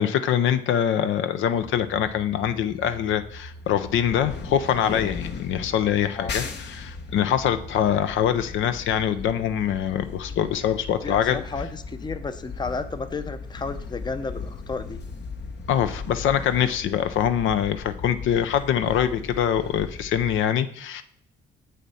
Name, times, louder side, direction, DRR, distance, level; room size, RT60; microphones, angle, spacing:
voice 1, 0.0-11.4 15.7-21.0, left 9 dB, 75° left, 10 dB, 0.6 m, -24 dB
sound 1, 1.5-20.4, left 4 dB, 60° left, 1.0 m, -38 dB
voice 2, 11.0-15.0, left 4 dB, 20° left, 10 dB, 0.6 m, -32 dB
7.5 x 6.6 x 4.2 m, 0.68 s
cardioid pair, 90°, 20 cm